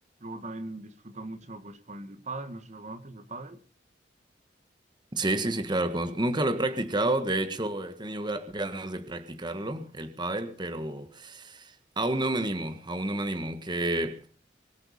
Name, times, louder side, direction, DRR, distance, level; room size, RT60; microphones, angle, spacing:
voice 1, 0.2-3.6, right 2 dB, 40° right, 1.5 m, -40 dB
voice 2, 5.1-14.2, right 2 dB, 25° right, 1.5 m, -30 dB
23.5 x 8.4 x 7.0 m
head